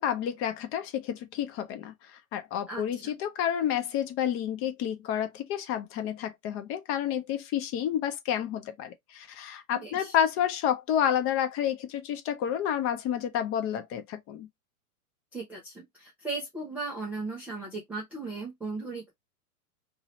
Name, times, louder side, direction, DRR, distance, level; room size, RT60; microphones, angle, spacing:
voice 1, 0.0-1.9 2.3-14.5, left 10 dB, 30° left, 0.6 m, -30 dB
voice 2, 9.7-10.1 15.3-19.1, right 3 dB, 5° right, 0.3 m, -37 dB
3.0 x 2.7 x 3.0 m
hypercardioid pair, 115°, 44 cm